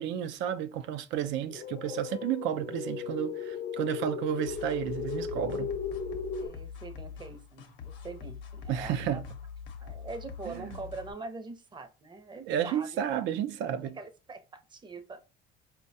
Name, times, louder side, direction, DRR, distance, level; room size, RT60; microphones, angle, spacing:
voice 1, 0.0-5.7 8.7-9.2 10.5-10.7 12.5-14.0, right 10 dB, 65° right, 0.5 m, -32 dB
sound 1, 1.5-6.5, left 6 dB, 35° left, 0.3 m, -36 dB
sound 2, 4.5-11.1, left 7 dB, 65° left, 0.8 m, -44 dB
voice 2, 6.4-9.2 9.8-13.0 13.9-15.3, right 3 dB, 20° right, 0.7 m, -43 dB
4.4 x 2.2 x 2.6 m
supercardioid pair, 95°, 20 cm